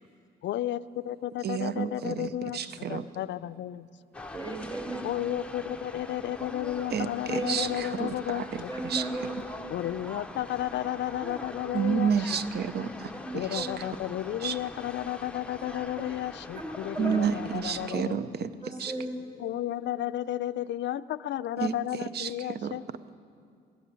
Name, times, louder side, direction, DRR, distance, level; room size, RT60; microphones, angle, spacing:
voice 1, 0.4-3.9 5.0-8.7 9.7-12.1 13.3-18.2 19.4-22.8, left 12 dB, 65° left, 14 dB, 0.4 m, -33 dB
voice 2, 1.4-3.0 6.9-9.1 11.7-13.8 14.4-14.6 17.0-18.5 18.8-18.9 21.6-21.8 22.1-22.8, right 7 dB, 55° right, 14 dB, 0.6 m, -30 dB
sound 1, 4.1-17.9, left 2 dB, 5° left, 0.6 m, -43 dB
voice 3, 4.3-5.0 7.3-7.5 8.7-9.3 13.1-13.3 13.5-14.0 16.5-16.6 16.9-17.2 18.6-19.1, right 2 dB, 25° right, 1 dB, 4.6 m, -35 dB
16.0 x 11.0 x 6.8 m, 2.3 s
cardioid pair, 90°, 20 cm